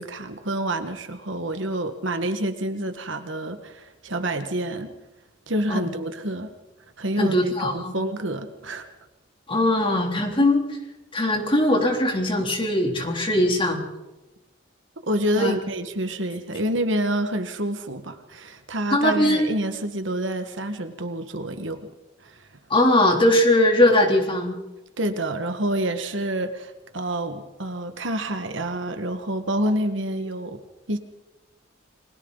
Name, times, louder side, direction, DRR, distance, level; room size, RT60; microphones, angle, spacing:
voice 1, 0.0-4.9 5.5-6.5 7.0-8.9 15.1-21.8 22.2-22.5 25.0-30.6 30.9-31.0, right 1 dB, 75° right, 7 dB, 1.8 m, -28 dB
voice 2, 7.2-7.9 9.5-10.7 11.1-13.8 15.4-15.5 18.9-19.6 22.7-24.6, left 1 dB, 25° left, 2 dB, 3.3 m, -20 dB
30.0 x 21.5 x 4.1 m, 1.0 s
head